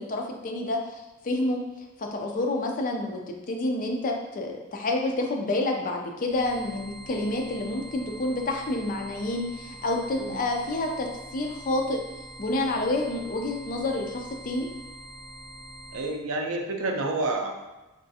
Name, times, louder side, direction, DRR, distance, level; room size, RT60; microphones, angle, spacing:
voice 1, 0.0-1.6 2.0-3.2 3.5-11.1 11.3-12.0 12.4-14.7, left 2 dB, 40° left, 2 dB, 0.4 m, -28 dB
sound 1, 6.2-16.2, right 1 dB, 35° right, 0.8 m, -44 dB
voice 2, 15.9-17.5, right 2 dB, 65° right, 3 dB, 0.4 m, -29 dB
3.5 x 2.4 x 2.6 m, 1.0 s
head